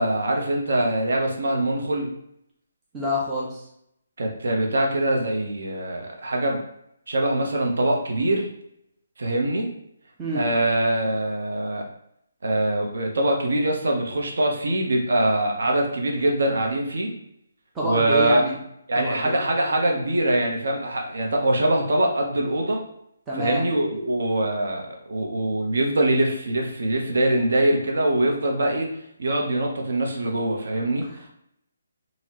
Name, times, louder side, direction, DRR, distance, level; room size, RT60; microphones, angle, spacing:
voice 1, 0.0-2.1 4.2-6.6 7.1-8.5 9.2-9.7 10.3-11.8 12.4-17.1 17.8-18.4 18.9-22.8 23.3-28.9 29.2-31.0, right 1 dB, 65° right, 1 dB, 0.7 m, -23 dB
voice 2, 2.9-3.6 10.2-10.4 17.7-18.6 19.0-19.4 23.3-23.7 31.1-31.3, equal, 5° right, -6 dB, 0.4 m, -27 dB
4.0 x 2.0 x 2.9 m, 0.74 s
hypercardioid pair, 175°, 0 cm